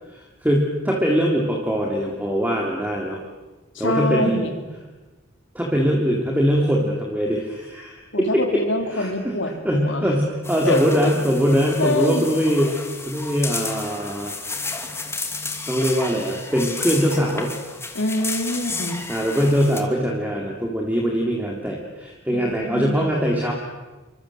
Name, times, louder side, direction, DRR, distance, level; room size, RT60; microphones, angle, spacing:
voice 1, 0.1-3.2 3.8-4.4 5.6-8.4 8.9-14.3 15.7-17.5 19.1-23.5, equal, 10° right, 0 dB, 3.5 m, -22 dB
voice 2, 3.8-4.6 8.1-10.1 10.6-11.1 11.8-12.3 17.9-19.1 22.3-23.1, left 1 dB, 65° left, 6 dB, 3.8 m, -25 dB
sound 1, 10.4-19.8, left 3 dB, 15° left, 2.7 m, -32 dB
28.0 x 25.5 x 8.0 m, 1.2 s
head